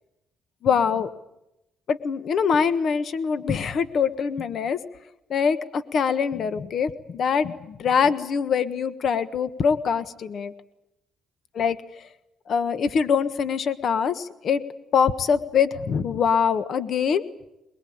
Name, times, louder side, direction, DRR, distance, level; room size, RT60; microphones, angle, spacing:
voice 1, 0.6-1.1 1.9-4.8 5.3-10.5 11.5-12.1 12.5-14.6 14.9-17.3, left 6 dB, 60° left, 12 dB, 1.5 m, -24 dB
22.5 x 22.5 x 8.8 m, 0.88 s
cardioid pair, 90°, 0 cm